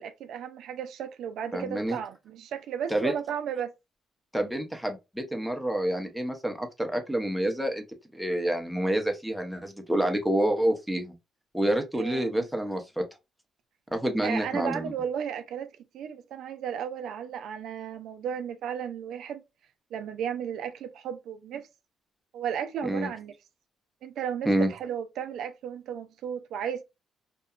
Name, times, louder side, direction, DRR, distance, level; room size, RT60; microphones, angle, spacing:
voice 1, 0.0-3.7 11.9-12.4 14.2-19.4 19.9-21.7 22.3-23.3 24.0-26.8, right 8 dB, 75° right, 0.3 m, -34 dB
voice 2, 1.5-2.0 2.9-3.1 4.3-7.8 8.1-11.1 11.5-13.0 13.9-14.9 22.8-23.1 24.5-24.7, right 1 dB, ahead, 0.6 m, -28 dB
2.8 x 2.2 x 2.3 m
cardioid pair, 90°, 0 cm